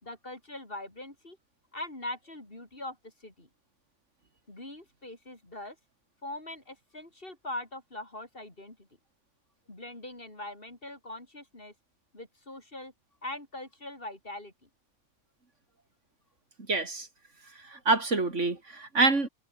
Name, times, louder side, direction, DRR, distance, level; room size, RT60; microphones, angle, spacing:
voice 1, 0.0-1.4 1.7-3.5 4.5-5.8 6.2-8.9 9.7-11.7 12.1-12.9 13.2-14.5, left 1 dB, 50° left, 5.4 m, -42 dB
voice 2, 16.7-17.1 17.7-19.3, right 3 dB, 80° right, 3.7 m, -26 dB
omnidirectional pair, 1.2 m